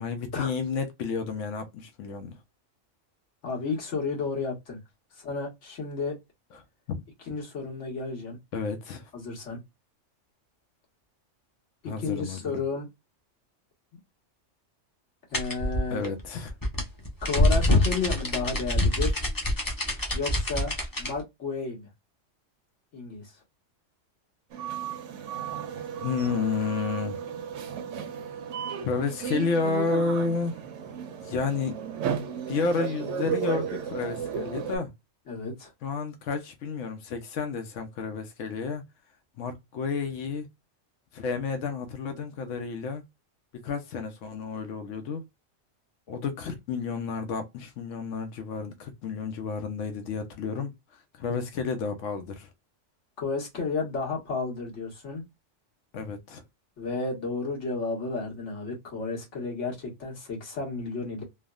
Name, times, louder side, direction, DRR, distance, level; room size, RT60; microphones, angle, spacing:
voice 1, 0.0-2.3 6.9-7.0 8.5-9.1 11.8-12.6 15.9-16.5 26.0-27.2 28.8-30.6 31.2-31.7 32.5-34.9 35.8-38.8 39.4-40.5 41.1-43.0 43.6-45.2 46.1-50.7 51.2-52.5 55.9-56.4, left 4 dB, 90° left, 1.0 m, -31 dB
voice 2, 3.4-4.8 5.1-6.2 7.2-8.4 9.1-9.6 11.8-12.9 15.3-16.0 17.2-19.2 20.1-20.7 21.0-21.9 22.9-23.4 35.3-35.7 53.2-55.2 56.8-61.2, left 4 dB, 75° left, 1.6 m, -32 dB
sound 1, 15.3-21.1, left 1 dB, 25° left, 0.5 m, -25 dB
sound 2, 24.5-34.8, right 8 dB, 80° right, 0.9 m, -34 dB
3.4 x 2.0 x 2.3 m
omnidirectional pair, 1.3 m